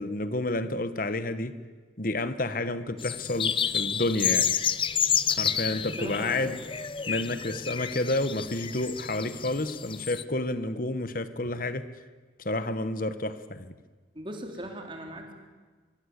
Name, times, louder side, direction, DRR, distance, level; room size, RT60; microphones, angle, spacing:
voice 1, 0.0-1.5 2.0-4.5 5.3-6.6 7.1-11.9 12.4-13.7, left 2 dB, 45° left, 12 dB, 1.3 m, -30 dB
sound 1, 3.0-10.2, left 8 dB, 25° left, 0.7 m, -30 dB
voice 2, 5.8-6.5 14.1-15.3, right 1 dB, 25° right, 3 dB, 3.8 m, -38 dB
24.0 x 24.0 x 8.2 m, 1.4 s
head